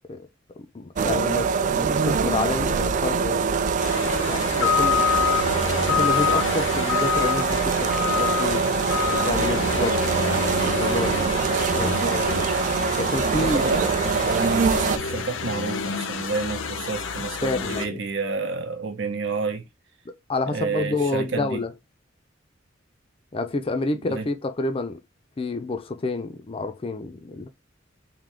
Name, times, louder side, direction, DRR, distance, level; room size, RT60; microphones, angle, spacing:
voice 1, 0.6-3.4 4.3-5.1 5.4-8.6 9.1-12.5 13.0-13.6 17.4-18.0 20.1-21.7 23.3-25.0 25.4-27.5, left 2 dB, 30° left, 0.4 m, -29 dB
sound 1, 1.0-15.0, right 5 dB, 40° right, 0.4 m, -24 dB
sound 2, 3.8-17.9, left 7 dB, 80° left, 0.7 m, -27 dB
voice 2, 13.3-19.7 20.5-21.6 24.1-24.3, right 4 dB, 70° right, 0.9 m, -30 dB
3.7 x 2.7 x 3.4 m
head